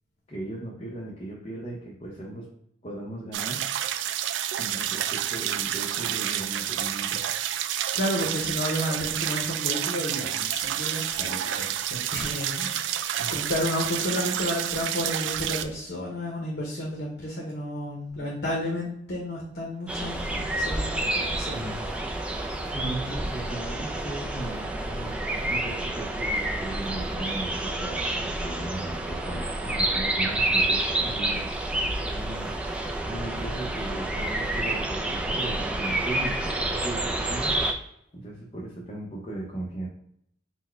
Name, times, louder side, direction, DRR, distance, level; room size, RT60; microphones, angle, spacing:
voice 1, 0.3-2.5 2.8-3.6 4.6-7.2 13.2-13.4 22.7-31.5 31.8-32.5 33.1-37.6 38.1-39.9, right 2 dB, 35° left, -4 dB, 0.8 m, -37 dB
sound 1, 3.3-15.6, right 11 dB, 75° right, 0.3 m, -29 dB
voice 2, 7.9-13.0 13.3-21.8, equal, 60° left, -2 dB, 0.9 m, -31 dB
sound 2, 19.9-37.7, right 1 dB, 5° right, 0.5 m, -29 dB
4.3 x 2.2 x 4.5 m, 0.72 s
head